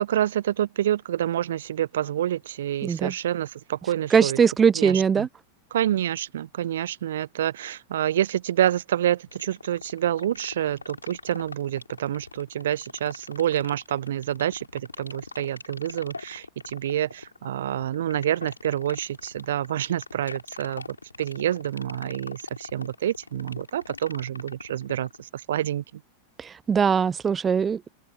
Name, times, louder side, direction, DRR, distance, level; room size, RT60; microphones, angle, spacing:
voice 1, 0.0-4.4 4.7-5.3 5.7-20.9 21.2-26.0, right 11 dB, 60° right, 0.7 m, -27 dB
voice 2, 2.8-3.1 4.1-5.3 26.4-27.9, right 6 dB, 20° right, 0.3 m, -21 dB
sound 1, 9.3-25.2, left 4 dB, 80° left, 3.2 m, -41 dB
open air
figure-of-eight pair, 90°, 0 cm